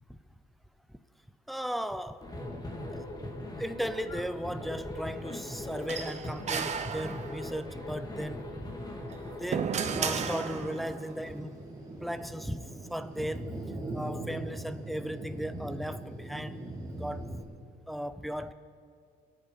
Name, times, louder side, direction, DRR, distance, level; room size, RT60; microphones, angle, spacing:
voice 1, 1.5-2.2 2.9-3.0 3.6-8.7 9.4-11.6 12.0-13.6 13.9-16.6 17.0-17.4 17.9-18.5, equal, ahead, 0.6 m, -36 dB
sound 1, 2.2-10.0, left 1 dB, 25° left, 1.9 m, -40 dB
sound 2, 5.9-7.6 9.0-11.0, right 7 dB, 40° right, 1.0 m, -34 dB
Thunder, 9.9-17.4, right 2 dB, 20° right, 3.2 m, -40 dB
26.0 x 9.0 x 5.2 m
cardioid pair, 110°, 17 cm